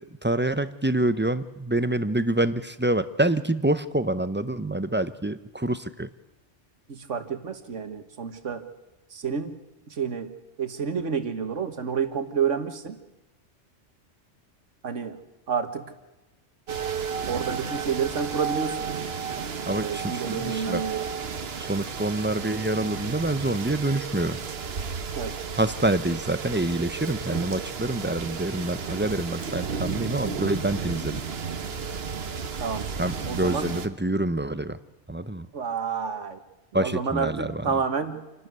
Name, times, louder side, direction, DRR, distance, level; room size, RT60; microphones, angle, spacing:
voice 1, 0.2-6.1 19.7-20.8 21.6-24.4 25.5-31.2 33.0-34.8 35.1-35.5 36.7-37.8, right 1 dB, 15° right, 13 dB, 0.5 m, -26 dB
voice 2, 6.9-8.7 9.1-9.5 9.9-13.0 14.8-15.2 15.5-15.9 17.3-18.8 19.8-21.1 25.2-25.4 32.6-32.9 33.3-33.7 35.5-36.4 36.8-38.2, right 6 dB, 80° right, 10 dB, 1.8 m, -29 dB
sound 1, 16.7-33.9, right 6 dB, 55° right, 1.3 m, -33 dB
27.5 x 12.0 x 9.4 m, 1.0 s
omnidirectional pair, 1.2 m